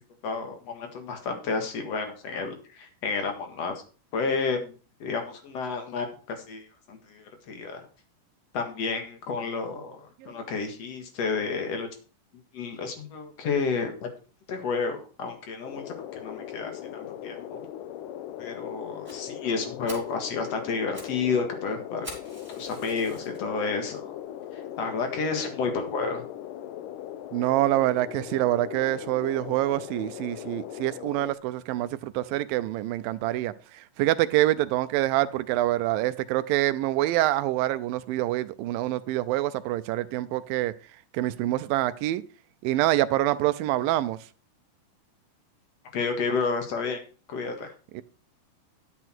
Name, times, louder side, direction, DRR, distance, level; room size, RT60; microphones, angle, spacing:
voice 1, 0.2-3.8 4.1-4.7 5.0-7.9 8.5-11.9 12.5-14.1 14.5-17.6 18.4-22.1 22.5-24.1 24.8-26.2 45.9-47.0 47.3-47.7, left 4 dB, 55° left, 2.6 m, -31 dB
sound 1, 15.6-31.4, left 11 dB, 75° left, 2.2 m, -39 dB
Fire, 19.0-19.2 19.6-19.7 19.9-20.2 20.7-21.2 21.4-21.5 22.0-23.4 24.0-24.1 24.6-24.7 25.0-25.1 25.4-25.5, right 1 dB, 5° right, 5.5 m, -44 dB
voice 2, 27.3-40.7 41.1-42.2 42.6-44.2 47.9-48.0, right 15 dB, 90° right, 2.4 m, -26 dB
11.0 x 8.3 x 4.5 m
omnidirectional pair, 3.9 m